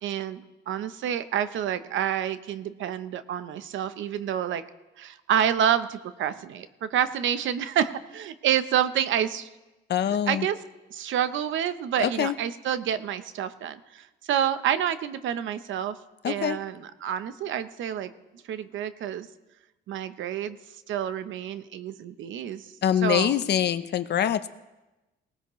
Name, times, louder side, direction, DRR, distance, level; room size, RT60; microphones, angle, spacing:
voice 1, 0.0-4.6 5.0-9.5 10.0-10.6 10.9-16.0 16.2-18.1 18.5-19.3 19.9-20.6 20.9-22.7 23.0-23.3, right 9 dB, 75° right, 12 dB, 0.8 m, -28 dB
voice 2, 9.9-10.5 12.0-12.3 16.2-16.6 22.8-24.5, left 10 dB, 55° left, 12 dB, 0.7 m, -24 dB
19.5 x 17.5 x 3.1 m, 1.1 s
cardioid pair, 90°, 20 cm